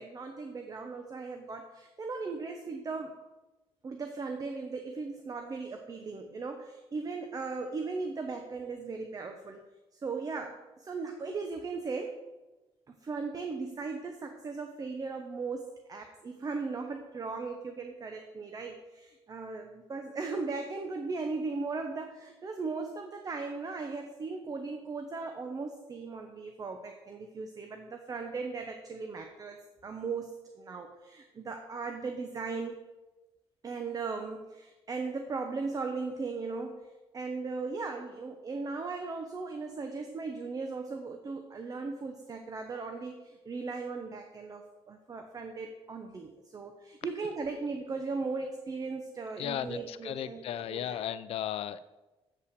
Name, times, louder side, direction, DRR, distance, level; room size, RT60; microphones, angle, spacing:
voice 1, 0.0-3.2 3.8-9.6 9.9-12.2 12.9-32.8 33.6-51.1, right 4 dB, 35° right, 5 dB, 0.8 m, -38 dB
voice 2, 49.4-51.8, left 10 dB, 75° left, 14 dB, 0.4 m, -35 dB
8.1 x 5.6 x 6.7 m, 1.1 s
cardioid pair, 105°, 10 cm